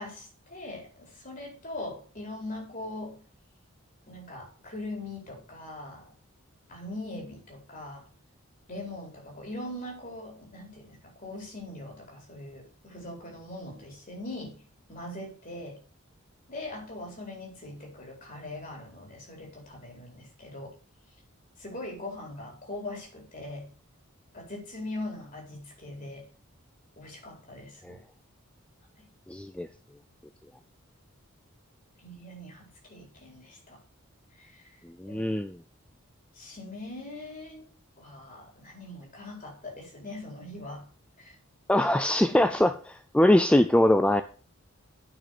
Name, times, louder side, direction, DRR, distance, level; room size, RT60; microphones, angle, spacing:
voice 1, 0.0-3.2 4.1-6.1 6.7-8.1 8.7-14.6 14.9-15.8 16.5-20.7 21.6-23.7 24.3-26.2 27.0-28.0 29.0-29.1 32.0-33.8 34.4-34.6 35.1-35.2 36.3-37.6 38.0-40.9 41.2-41.3, left 2 dB, 40° left, 0 dB, 4.5 m, -41 dB
voice 2, 29.3-29.7 35.0-35.6 41.7-44.2, left 1 dB, 5° left, 9 dB, 0.4 m, -22 dB
9.0 x 6.2 x 6.7 m, 0.40 s
head